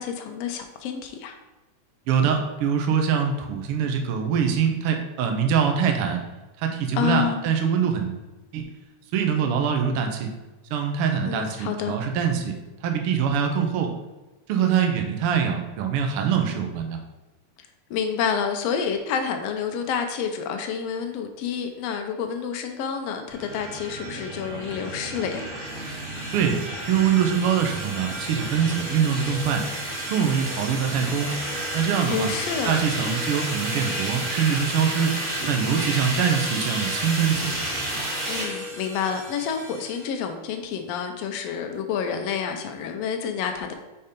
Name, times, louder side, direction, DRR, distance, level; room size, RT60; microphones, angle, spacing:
voice 1, 0.0-1.4 6.9-7.5 11.2-12.0 17.6-25.4 32.1-32.8 38.3-43.7, left 7 dB, 80° left, 5 dB, 1.4 m, -29 dB
voice 2, 2.1-6.2 6.6-8.2 8.5-8.7 9.1-10.3 10.7-12.6 12.8-13.9 14.5-17.0 26.3-26.6 26.9-29.6 30.1-31.4 31.7-32.3 32.6-35.1 35.5-37.5, right 7 dB, 75° right, 4 dB, 1.3 m, -23 dB
sound 1, 23.3-40.1, right 1 dB, 25° right, 1.6 m, -31 dB
5.4 x 4.5 x 5.0 m, 1.1 s
omnidirectional pair, 3.5 m